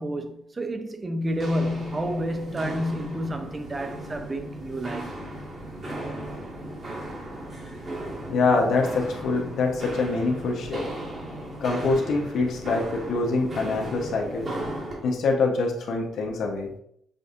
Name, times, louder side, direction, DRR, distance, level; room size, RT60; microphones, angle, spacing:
voice 1, 0.0-5.1, equal, 25° right, 0.6 m, -30 dB
Walk footsteps, 1.2-15.0, right 1 dB, 40° right, 1.8 m, -36 dB
voice 2, 8.3-10.9 11.6-14.5 15.0-16.7, left 3 dB, 70° left, 0.9 m, -25 dB
6.4 x 2.6 x 2.5 m
cardioid pair, 90°, 0 cm